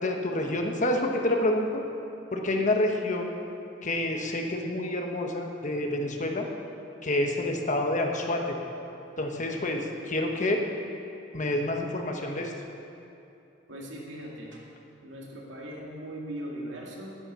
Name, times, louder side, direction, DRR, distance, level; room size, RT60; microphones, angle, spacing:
voice 1, 0.0-1.8 2.3-3.3 3.8-6.5 7.0-8.6 9.2-10.6 11.3-12.5, left 1 dB, 40° left, 3 dB, 1.2 m, -28 dB
voice 2, 13.7-14.6 15.0-17.2, right 1 dB, 75° right, -3 dB, 2.3 m, -39 dB
10.0 x 9.6 x 7.0 m, 2.7 s
head